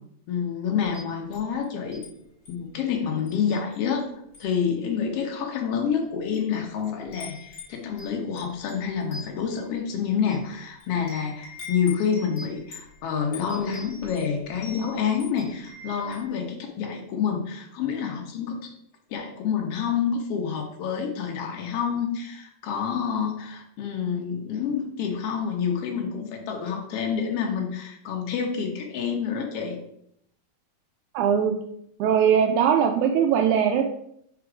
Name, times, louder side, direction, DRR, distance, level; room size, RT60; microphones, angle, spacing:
voice 1, 0.3-2.0 2.5-4.0 4.4-18.7 19.1-29.8, left 7 dB, 80° left, 2 dB, 1.3 m, -28 dB
Wind chime, 0.8-2.1 2.5-2.7 3.3-4.0 4.3-4.6 5.3-5.4 6.1-6.5 6.8-16.3, left 3 dB, 55° left, 1.5 m, -44 dB
voice 2, 31.1-31.5 32.0-33.8, right 8 dB, 80° right, 3 dB, 1.7 m, -20 dB
5.0 x 4.3 x 4.8 m, 0.73 s
omnidirectional pair, 3.9 m